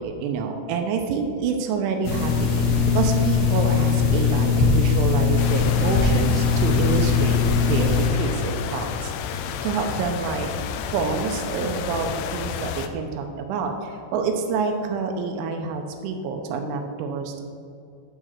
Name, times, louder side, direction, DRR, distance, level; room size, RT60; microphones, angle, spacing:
voice 1, 0.0-7.4 7.6-10.5 10.9-17.4, right 5 dB, 80° right, 4 dB, 2.9 m, -27 dB
sound 1, 2.0-8.1, left 6 dB, 70° left, 2.8 m, -20 dB
sound 2, 5.4-12.9, left 7 dB, 85° left, 3.2 m, -31 dB
10.5 x 3.7 x 6.4 m, 2.5 s
omnidirectional pair, 5.7 m